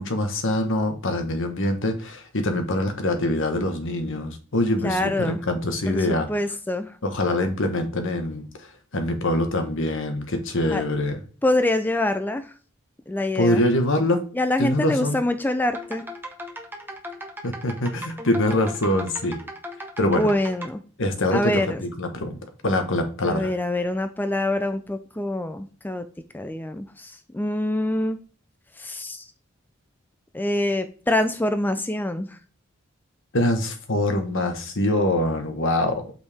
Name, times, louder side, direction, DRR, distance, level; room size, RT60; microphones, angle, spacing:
voice 1, 0.0-6.3 7.0-8.7 8.9-11.2 13.3-14.2 14.6-15.2 17.4-19.4 20.0-20.3 21.0-22.4 22.6-23.5 33.3-36.1, left 1 dB, 65° left, 6 dB, 1.3 m, -24 dB
voice 2, 4.8-5.4 5.9-6.9 10.7-10.8 11.4-12.4 13.1-13.6 14.3-16.0 20.0-20.8 21.3-21.8 23.2-26.1 26.3-28.2 28.8-29.3 30.3-32.4, left 1 dB, 10° left, 8 dB, 0.5 m, -25 dB
sound 1, 15.7-20.7, equal, 10° right, 1.2 m, -37 dB
8.4 x 4.5 x 3.5 m, 0.41 s
head